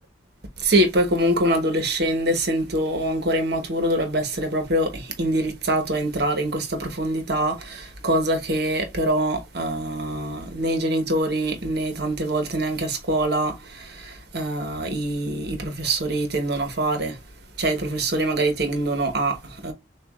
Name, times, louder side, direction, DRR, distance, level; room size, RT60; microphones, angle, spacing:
voice 1, 0.6-17.2 17.6-19.7, right 1 dB, 55° right, 1.1 m, -24 dB
6.7 x 2.5 x 2.4 m
head